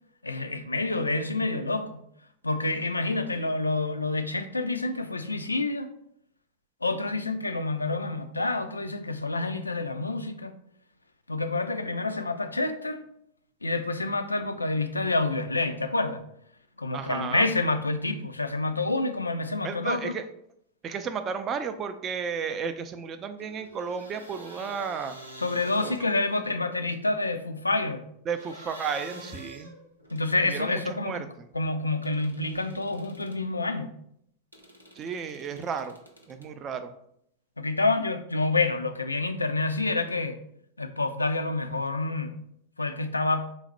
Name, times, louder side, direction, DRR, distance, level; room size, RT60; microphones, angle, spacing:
voice 1, 0.2-2.0 2.4-5.9 6.8-10.6 11.3-13.0 13.6-16.2 16.8-20.1 25.4-28.0 30.1-31.3 31.5-33.9 37.6-40.4 40.8-42.4 42.8-43.5, left 2 dB, 80° left, 0.3 m, -28 dB
voice 2, 16.9-17.5 19.6-20.2 20.8-25.2 25.8-26.1 28.3-29.7 30.5-31.3 35.0-36.0 36.3-36.9, right 6 dB, 30° right, 0.3 m, -33 dB
sound 1, 23.4-26.4 28.4-30.3 32.0-33.5 34.5-36.5, equal, 85° right, 0.6 m, -48 dB
3.9 x 2.1 x 4.3 m
figure-of-eight pair, 90°, 0 cm